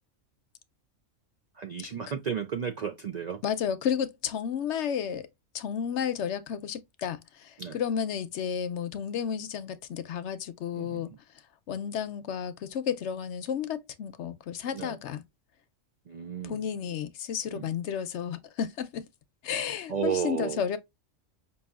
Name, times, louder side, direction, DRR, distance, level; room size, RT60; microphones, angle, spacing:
voice 1, 1.6-3.4 7.6-7.8 10.7-11.0 14.7-15.0 16.1-16.6 17.5-17.6 19.9-20.6, right 7 dB, 70° right, 0.4 m, -33 dB
voice 2, 3.4-5.3 5.5-11.1 11.7-15.2 16.4-19.0 19.4-20.8, left 8 dB, 70° left, 0.9 m, -32 dB
5.5 x 2.7 x 2.3 m
omnidirectional pair, 1.3 m